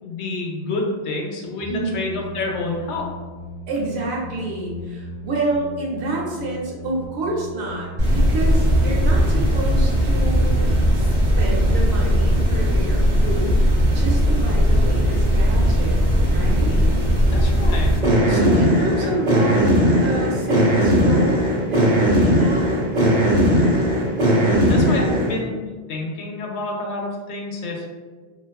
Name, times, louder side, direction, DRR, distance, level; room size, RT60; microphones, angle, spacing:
voice 1, 0.0-3.1 16.6-16.9 17.3-17.9 19.0-19.1 24.7-25.6 25.9-27.9, left 2 dB, 85° left, 0 dB, 0.9 m, -28 dB
sound 1, 1.6-8.2, left 1 dB, 30° left, 0.8 m, -37 dB
voice 2, 1.7-2.0 3.7-10.7 10.9-16.0 16.3-16.7 18.3-19.6 19.9-22.8, right 2 dB, 80° right, -3 dB, 0.9 m, -28 dB
sound 2, 8.0-25.4, equal, 45° right, 0.7 m, -18 dB
2.4 x 2.4 x 2.2 m, 1.4 s
omnidirectional pair, 1.1 m